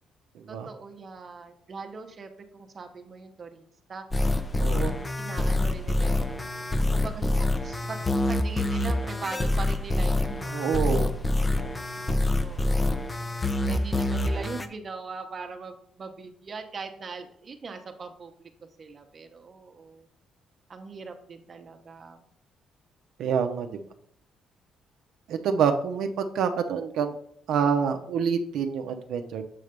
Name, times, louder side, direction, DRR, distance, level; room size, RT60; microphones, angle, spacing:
voice 1, 0.5-4.4 4.9-6.4 6.9-8.0 8.2-11.0 11.4-11.6 12.4-13.0 13.6-18.5 18.8-20.1 20.7-22.2 27.6-28.2, right 4 dB, 35° right, 5 dB, 0.8 m, -41 dB
sound 1, 4.1-14.7, left 2 dB, 20° left, 0.5 m, -26 dB
voice 2, 4.6-5.0 10.5-11.1 11.4-11.7 23.2-23.8 25.3-27.1 27.5-29.5, right 6 dB, 75° right, 6 dB, 0.6 m, -27 dB
7.6 x 3.3 x 5.1 m, 0.64 s
cardioid pair, 125°, 0 cm